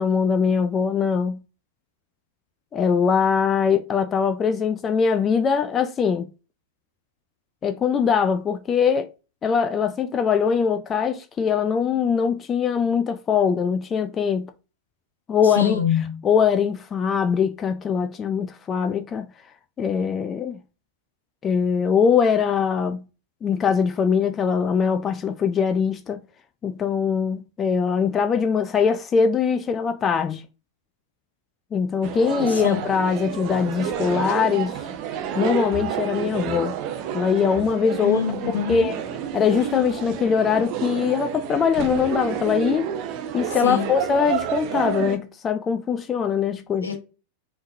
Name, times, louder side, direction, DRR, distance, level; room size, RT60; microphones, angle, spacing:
voice 1, 0.0-1.4 2.7-6.3 7.6-9.1 9.4-14.5 15.3-15.8 16.2-19.3 19.8-20.6 21.4-23.0 23.4-26.2 26.6-30.4 31.7-34.8 35.3-36.8 37.1-38.2 38.5-39.0 39.3-42.8 43.3-46.9, left 6 dB, 25° left, 0.4 m, -22 dB
voice 2, 15.4-16.2 32.5-32.9 38.0-38.9 43.6-43.9 46.8-47.0, left 7 dB, 75° left, 1.0 m, -25 dB
sound 1, 32.0-45.2, right 9 dB, 40° right, 0.7 m, -30 dB
5.4 x 3.2 x 2.6 m
figure-of-eight pair, 90°, 0 cm